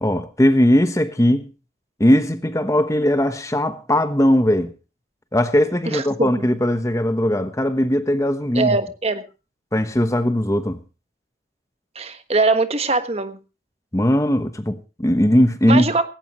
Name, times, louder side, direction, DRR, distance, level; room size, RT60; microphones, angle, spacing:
voice 1, 0.0-1.5 2.0-4.7 5.3-8.8 9.7-10.8 13.9-15.9, left 1 dB, 15° left, 1.0 m, -19 dB
voice 2, 5.9-6.5 8.5-9.2 11.9-13.4 15.7-16.1, right 3 dB, 35° right, 1.3 m, -21 dB
17.5 x 16.5 x 3.0 m
head